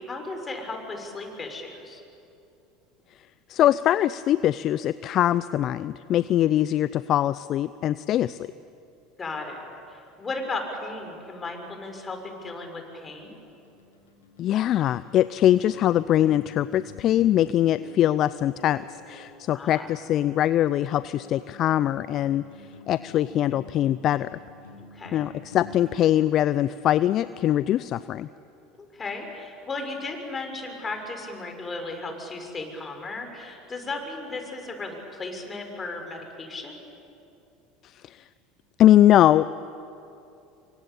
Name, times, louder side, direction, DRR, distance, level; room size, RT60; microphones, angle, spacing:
voice 1, 0.0-2.0 9.2-13.4 19.5-19.9 24.9-25.2 28.8-36.8, left 3 dB, 25° left, 4 dB, 6.4 m, -35 dB
voice 2, 3.5-8.4 14.4-24.4 25.1-28.3 37.8-38.2 38.8-39.4, left 12 dB, 50° left, 16 dB, 0.5 m, -22 dB
sound 1, 13.0-27.2, left 3 dB, 85° left, 6.6 m, -48 dB
27.5 x 25.0 x 8.6 m, 2.7 s
hypercardioid pair, 75°, 0 cm